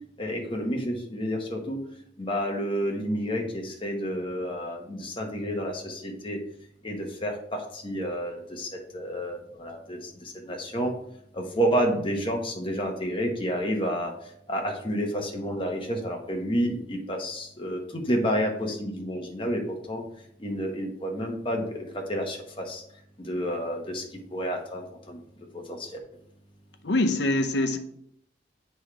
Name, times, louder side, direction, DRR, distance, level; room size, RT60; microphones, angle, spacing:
voice 1, 0.2-1.8 2.2-6.4 6.8-10.9 11.3-14.1 14.5-20.0 20.4-22.8 23.2-24.0 24.3-25.2 25.5-25.9, equal, 30° left, 1.1 m, -30 dB
voice 2, 26.8-27.8, left 1 dB, 65° left, 0.7 m, -24 dB
8.1 x 3.3 x 4.8 m
head